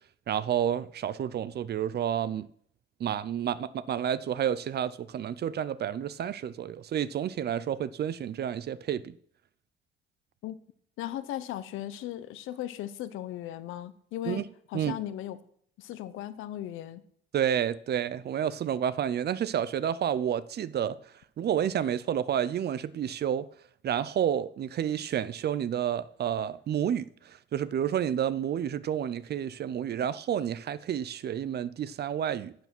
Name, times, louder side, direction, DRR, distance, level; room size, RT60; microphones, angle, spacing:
voice 1, 0.3-2.5 3.0-9.1 14.2-14.4 14.7-15.0 17.3-21.0 21.4-23.5 23.8-32.5, right 9 dB, 55° right, 0.6 m, -30 dB
voice 2, 11.0-15.4 15.8-17.0, left 12 dB, 90° left, 0.9 m, -37 dB
11.5 x 7.1 x 6.1 m
cardioid pair, 90°, 20 cm